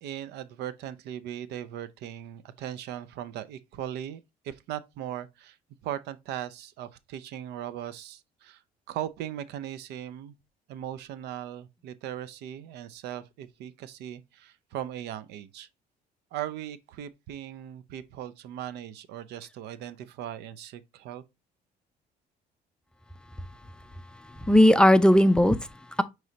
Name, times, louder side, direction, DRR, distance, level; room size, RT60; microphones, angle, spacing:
voice 1, 0.0-5.6 5.8-8.6 8.9-10.3 10.7-15.7 16.3-21.2, right 11 dB, 80° right, 0.5 m, -38 dB
voice 2, 24.1-26.0, left 1 dB, 5° left, 0.4 m, -19 dB
6.2 x 3.1 x 2.8 m
cardioid pair, 110°, 17 cm